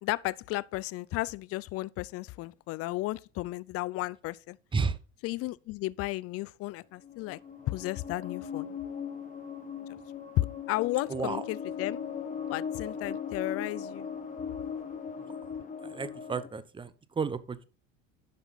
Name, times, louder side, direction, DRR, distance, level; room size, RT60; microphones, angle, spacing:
voice 1, 0.0-4.6 5.2-7.4 7.7-8.7 10.4-12.0 12.5-14.1, left 18 dB, 45° left, 0.4 m, -33 dB
sound 1, 7.0-16.5, left 7 dB, 20° left, 1.2 m, -38 dB
voice 2, 15.8-17.6, right 5 dB, 15° right, 0.7 m, -32 dB
10.5 x 6.2 x 4.0 m
supercardioid pair, 105°, 35 cm